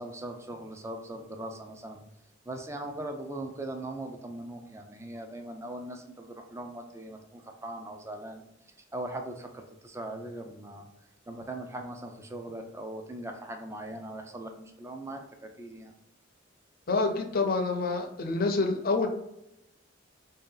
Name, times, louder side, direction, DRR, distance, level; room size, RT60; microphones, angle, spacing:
voice 1, 0.0-2.0 2.5-8.4 8.9-10.9 11.3-15.9, right 1 dB, 15° right, 4 dB, 0.4 m, -40 dB
voice 2, 16.9-19.1, left 3 dB, 50° left, 4 dB, 0.6 m, -27 dB
3.2 x 2.7 x 3.7 m, 0.85 s
head